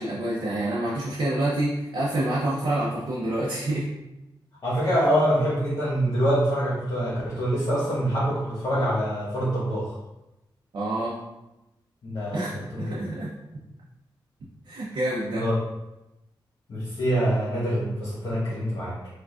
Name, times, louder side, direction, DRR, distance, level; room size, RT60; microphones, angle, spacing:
voice 1, 0.0-3.9 10.7-11.2 12.3-13.3 14.7-15.5, right 1 dB, 65° right, -6 dB, 0.7 m, -27 dB
voice 2, 4.6-9.9 12.0-12.4 12.7-12.8 15.3-15.5 16.7-18.9, equal, 55° left, -10 dB, 1.2 m, -25 dB
4.8 x 2.3 x 2.4 m, 0.96 s
wide cardioid pair, 115°, 9 cm